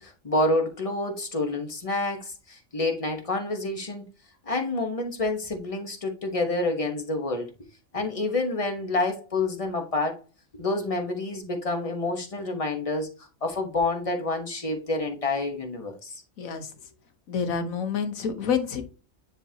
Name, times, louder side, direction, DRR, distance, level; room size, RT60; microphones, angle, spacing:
voice 1, 0.0-4.0 4.5-7.5 7.9-10.2 10.5-16.2, left 2 dB, 25° left, 1.1 m, -28 dB
voice 2, 17.3-18.8, left 6 dB, 80° left, 1.4 m, -28 dB
9.8 x 3.7 x 2.8 m
omnidirectional pair, 1.4 m